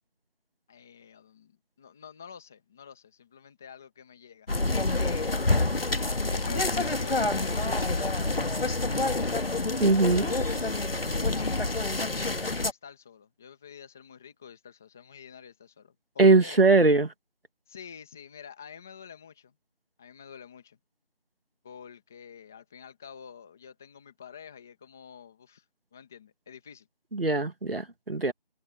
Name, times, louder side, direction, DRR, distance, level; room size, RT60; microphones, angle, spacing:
voice 1, 0.7-4.7 5.0-5.5 6.2-8.4 10.1-11.7 12.4-16.6 17.7-19.5 20.0-20.8 21.6-25.6 25.9-26.9, left 7 dB, 5° left, 1.3 m, -48 dB
sound 1, 4.5-12.7, left 2 dB, 75° left, 1.8 m, -27 dB
voice 2, 9.8-10.3 16.2-17.1 27.1-28.3, right 3 dB, 80° right, 2.3 m, -21 dB
figure-of-eight pair, 170°, 29 cm